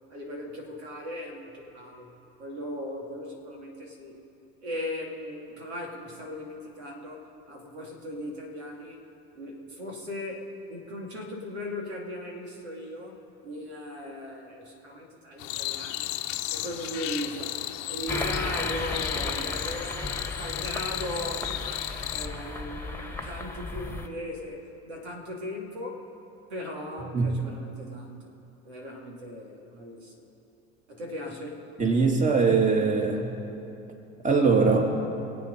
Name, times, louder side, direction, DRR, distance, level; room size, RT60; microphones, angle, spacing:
voice 1, 0.1-2.1 2.4-4.2 4.6-9.0 9.3-13.2 13.4-16.1 16.5-17.6 17.9-26.0 26.5-28.3 28.6-30.3 30.9-31.6, left 1 dB, 80° right, 0 dB, 2.5 m, -38 dB
sound 1, 15.4-22.3, left 14 dB, 70° left, 0.9 m, -34 dB
sound 2, 18.1-24.1, left 2 dB, 5° left, 1.7 m, -34 dB
voice 2, 31.8-33.3 34.2-35.0, right 4 dB, 25° right, 1 dB, 2.6 m, -22 dB
25.0 x 8.6 x 5.2 m, 2.8 s
hypercardioid pair, 65°, 32 cm